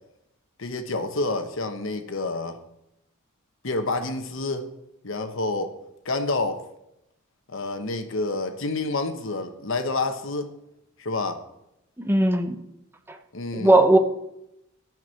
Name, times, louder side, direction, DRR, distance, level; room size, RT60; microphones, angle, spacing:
voice 1, 0.6-2.6 3.6-4.7 5.0-5.7 6.0-6.6 7.5-10.5 11.0-11.4 13.3-13.8, left 2 dB, 60° left, 7 dB, 1.1 m, -28 dB
voice 2, 12.0-12.6 13.5-14.0, right 1 dB, 10° right, 7 dB, 0.8 m, -18 dB
10.5 x 6.1 x 7.4 m, 0.85 s
head